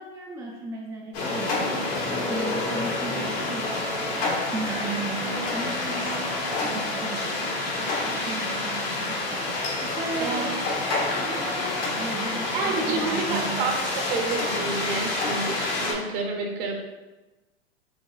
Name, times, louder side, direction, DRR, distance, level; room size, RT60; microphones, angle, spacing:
voice 1, 0.0-1.7 2.2-3.8 4.5-7.6 8.1-10.6 11.2-11.5 11.9-13.7, right 3 dB, 10° right, -2 dB, 0.4 m, -36 dB
sound 1, 1.1-15.9, left 2 dB, 60° left, 1.3 m, -28 dB
sound 2, 1.4-8.8, right 3 dB, 85° right, 0.9 m, -39 dB
voice 2, 10.2-10.6 12.5-16.7, right 4 dB, 55° right, 2 dB, 1.1 m, -29 dB
4.7 x 3.6 x 2.3 m, 1.1 s
hypercardioid pair, 105°, 33 cm